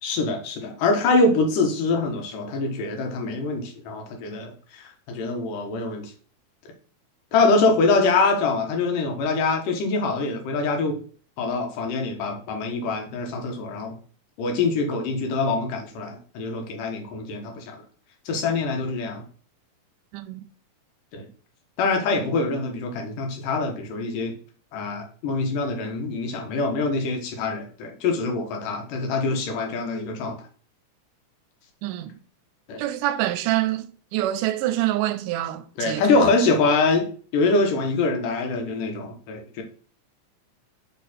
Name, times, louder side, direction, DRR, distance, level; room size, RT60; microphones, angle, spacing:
voice 1, 0.0-6.1 7.3-11.0 11.4-14.0 14.4-17.8 18.3-19.2 21.1-21.3 21.8-24.3 24.7-30.4 32.7-32.8 35.8-37.1 37.3-39.6, left 3 dB, 90° left, 2.8 m, -24 dB
voice 2, 20.1-20.5 31.8-32.2 32.8-36.3, right 14 dB, 85° right, 2.1 m, -26 dB
5.6 x 4.3 x 4.1 m
omnidirectional pair, 3.7 m